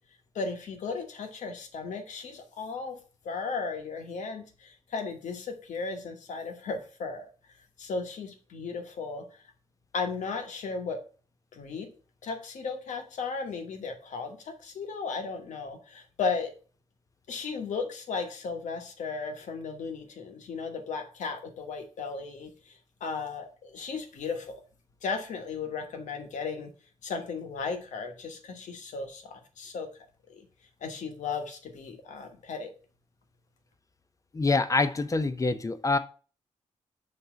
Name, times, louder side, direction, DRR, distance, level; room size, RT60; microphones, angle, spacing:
voice 1, 0.3-3.0 3.2-7.3 7.8-9.2 9.9-11.0 11.5-11.9 12.2-16.5 17.3-24.6 25.0-26.7 27.0-29.9 30.3-30.5 30.8-32.7, left 4 dB, 85° left, 1.2 m, -35 dB
voice 2, 34.3-36.0, left 3 dB, 25° left, 0.6 m, -25 dB
5.6 x 3.6 x 5.0 m
cardioid pair, 90°, 12 cm